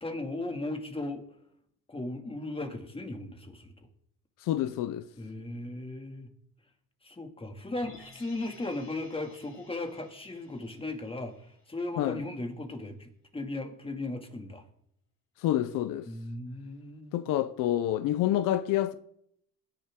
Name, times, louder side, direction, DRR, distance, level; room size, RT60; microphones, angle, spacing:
voice 1, 0.0-1.2 1.9-3.9 5.2-6.3 7.0-14.6 16.1-17.3, left 2 dB, 15° left, 2.4 m, -37 dB
voice 2, 4.4-5.1 12.0-12.2 15.4-16.1 17.1-18.9, left 12 dB, 80° left, 0.8 m, -28 dB
sound 1, 7.7-11.9 12.3-12.4, left 3 dB, 45° left, 6.4 m, -55 dB
20.0 x 10.5 x 3.7 m
cardioid pair, 95°, 31 cm